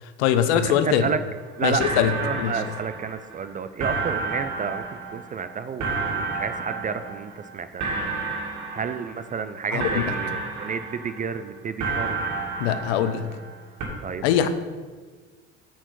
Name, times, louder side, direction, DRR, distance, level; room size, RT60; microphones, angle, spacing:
voice 1, 0.0-1.1 1.6-2.5 9.7-10.0 12.6-13.2 14.2-14.5, left 10 dB, 70° left, 10 dB, 0.8 m, -22 dB
voice 2, 0.6-1.2 1.6-7.9 8.7-12.2 14.0-14.5, right 6 dB, 25° right, 11 dB, 0.4 m, -31 dB
sound 1, 1.4-1.5 1.8-3.4 3.8-7.5 7.8-9.4 9.8-11.4 11.8-13.5 13.8-13.9, right 3 dB, 60° right, 2.2 m, -31 dB
8.7 x 4.6 x 5.9 m, 1.4 s
hypercardioid pair, 65°, 35 cm